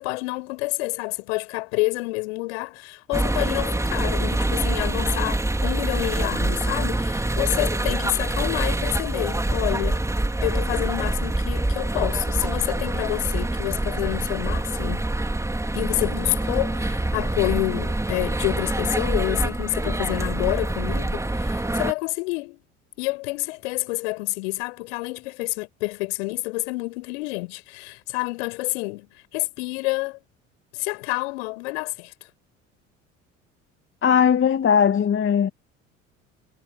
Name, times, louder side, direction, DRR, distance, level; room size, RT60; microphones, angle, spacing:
voice 1, 0.0-10.0 10.4-15.0 15.7-22.6 23.0-29.1 29.3-30.2 30.7-32.1, left 25 dB, 65° left, 5.9 m, -28 dB
sound 1, 3.1-21.9, right 2 dB, 10° right, 3.9 m, -25 dB
voice 2, 34.0-35.5, left 7 dB, 30° left, 2.4 m, -19 dB
figure-of-eight pair, 60°, 38 cm